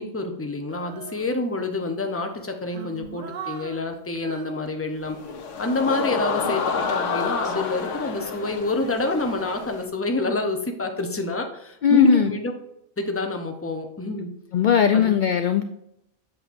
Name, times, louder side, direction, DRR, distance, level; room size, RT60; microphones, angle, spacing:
voice 1, 0.0-5.2 5.6-12.5 13.0-14.3 14.9-15.1, left 2 dB, 15° left, 4 dB, 0.7 m, -27 dB
Female singing, 0.7-1.8 2.3-5.6 6.2-9.4, right 6 dB, 50° right, 0.7 m, -41 dB
sound 1, 5.0-9.9, left 5 dB, 85° left, 1.2 m, -29 dB
voice 2, 11.8-12.3 14.5-15.6, left 7 dB, 60° left, 7 dB, 0.5 m, -18 dB
8.0 x 7.1 x 2.6 m, 0.79 s
omnidirectional pair, 1.3 m